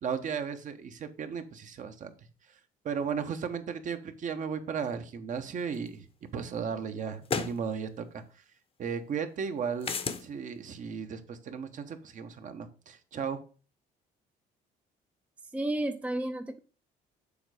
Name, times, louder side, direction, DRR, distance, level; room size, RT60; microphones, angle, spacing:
voice 1, 0.0-2.1 2.8-6.1 6.3-8.2 8.8-9.9 10.2-13.4, right 6 dB, 50° right, 8 dB, 1.0 m, -35 dB
sound 1, 5.9-6.0 7.2-7.6 9.8-10.2, left 6 dB, 35° left, 0.8 m, -31 dB
voice 2, 15.5-16.6, right 1 dB, 10° right, 8 dB, 0.5 m, -31 dB
7.0 x 4.0 x 4.9 m, 0.37 s
cardioid pair, 110°, 17 cm